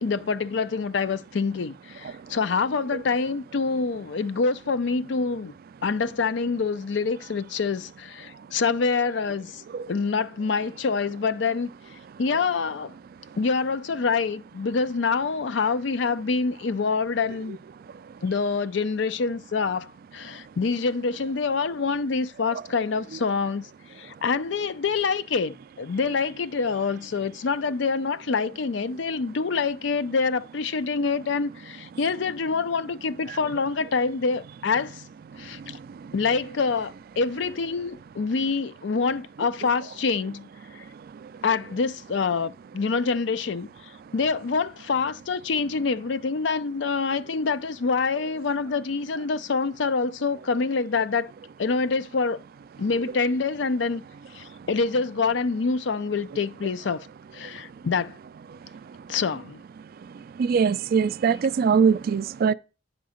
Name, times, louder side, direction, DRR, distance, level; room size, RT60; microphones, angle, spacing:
voice 1, 0.0-5.5 5.8-9.6 9.9-11.7 12.2-12.9 13.4-17.6 18.2-23.7 24.0-35.0 35.4-35.8 36.1-40.5 40.7-40.8 41.4-51.3 51.6-52.4 52.8-54.0 54.3-57.1 57.3-58.2 59.1-59.6, left 4 dB, 70° left, 0.5 m, -26 dB
voice 2, 60.4-62.5, right 6 dB, 55° right, 0.3 m, -22 dB
9.3 x 3.8 x 6.3 m
head